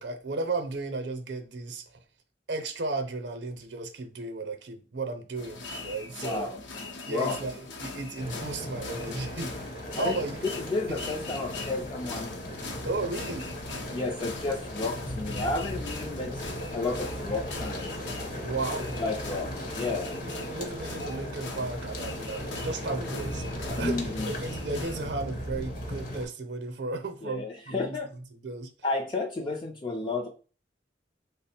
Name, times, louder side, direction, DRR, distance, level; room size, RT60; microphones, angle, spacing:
voice 1, 0.0-1.8 2.5-6.5 7.1-10.4 10.9-11.0 12.8-13.5 18.4-18.9 20.1-24.1 24.4-28.7, right 3 dB, 65° right, 0.6 m, -35 dB
sound 1, 5.3-25.1, left 3 dB, 75° left, 0.6 m, -41 dB
voice 2, 6.2-6.6 7.1-7.4 10.0-10.2 10.7-12.4 13.9-16.4 16.7-17.9 19.0-20.2 23.8-24.3 27.2-28.1 28.8-30.3, left 3 dB, 25° left, 0.3 m, -32 dB
sound 2, 8.2-26.3, equal, 50° left, 0.9 m, -37 dB
3.3 x 2.0 x 4.2 m
head